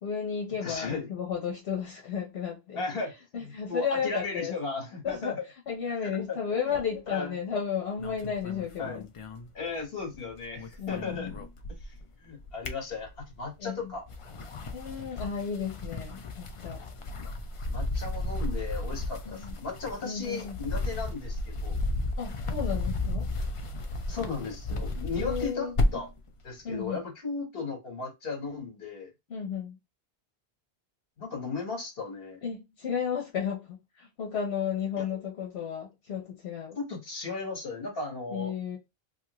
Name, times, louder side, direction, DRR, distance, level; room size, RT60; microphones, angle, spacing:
voice 1, 0.0-2.8 3.3-4.5 5.0-5.4 5.7-9.0 10.8-11.3 13.6-13.9 14.7-16.8 19.2-19.5 20.0-20.6 22.2-23.3 25.1-25.7 26.6-27.0 29.3-29.7 32.4-36.8 38.3-38.8, left 7 dB, 85° left, 1.1 m, -33 dB
voice 2, 0.6-1.1 2.7-5.3 6.0-6.4 6.7-6.8 7.1-7.3 8.8-9.0 9.5-11.3 11.8-11.9 12.2-14.1 17.2-17.3 17.7-21.8 24.1-26.1 26.4-29.1 31.2-32.4 35.0-35.1 36.7-38.5, left 4 dB, 65° left, 1.5 m, -36 dB
sound 1, 8.0-10.2 10.4-12.0 12.4-13.4 14.0-26.2, left 2 dB, 50° left, 0.4 m, -33 dB
2.9 x 2.5 x 2.9 m
omnidirectional pair, 1.1 m